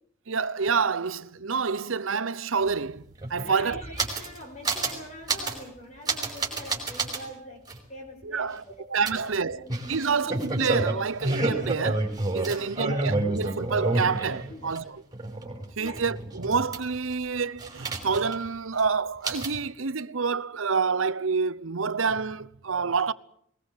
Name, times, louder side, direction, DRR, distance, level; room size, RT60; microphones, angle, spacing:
voice 1, 0.3-3.0 3.3-3.8 8.2-8.6 8.9-9.6 9.9-15.0 15.8-23.1, right 5 dB, 75° right, 0.9 m, -28 dB
sound 1, 2.7-2.8 3.0-4.4 4.6-5.0 5.3-5.6 6.0-7.2 7.7-7.8 9.0-14.8 15.1-17.1 17.6-18.5 18.7-18.8 19.2-19.6, right 2 dB, 20° right, 5.2 m, -29 dB
voice 2, 3.4-7.6 7.9-10.3 12.5-13.0 14.5-14.6 15.8-16.0, equal, 35° left, 4.4 m, -44 dB
21.0 x 20.5 x 8.0 m
head